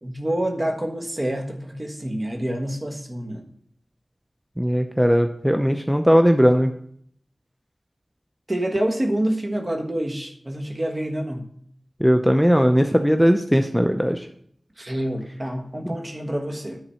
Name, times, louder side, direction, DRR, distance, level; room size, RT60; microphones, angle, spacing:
voice 1, 0.0-3.4 8.5-11.5 14.8-16.8, right 1 dB, 40° right, 3 dB, 1.4 m, -27 dB
voice 2, 4.6-6.7 12.0-14.2, equal, 5° right, 6 dB, 0.6 m, -18 dB
10.0 x 4.0 x 5.6 m, 0.66 s
wide cardioid pair, 50°, 0 cm